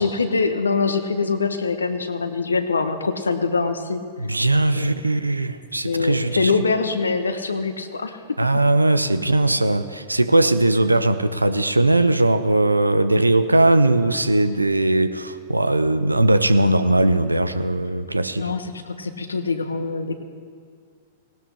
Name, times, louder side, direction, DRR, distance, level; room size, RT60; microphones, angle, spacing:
voice 1, 0.0-4.0 4.8-5.0 5.8-8.2 18.4-20.1, left 4 dB, 80° left, 9 dB, 1.0 m, -23 dB
voice 2, 4.2-6.5 8.4-18.5, right 2 dB, 90° right, 13 dB, 0.6 m, -19 dB
18.0 x 17.5 x 3.4 m, 2.2 s
figure-of-eight pair, 100°, 0 cm